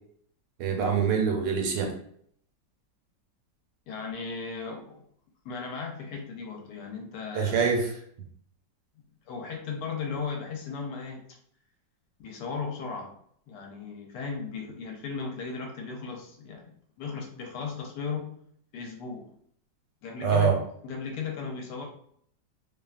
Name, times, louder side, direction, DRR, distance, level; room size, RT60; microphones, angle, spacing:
voice 1, 0.6-1.9 7.3-7.9 20.2-20.6, right 6 dB, 85° right, 3 dB, 1.3 m, -24 dB
voice 2, 3.9-5.0 5.4-7.7 9.3-11.3 12.2-13.2 13.5-16.7 17.0-18.4 18.7-19.3 20.0-21.9, left 5 dB, 75° left, 2 dB, 1.2 m, -36 dB
2.9 x 2.2 x 2.3 m, 0.63 s
omnidirectional pair, 1.9 m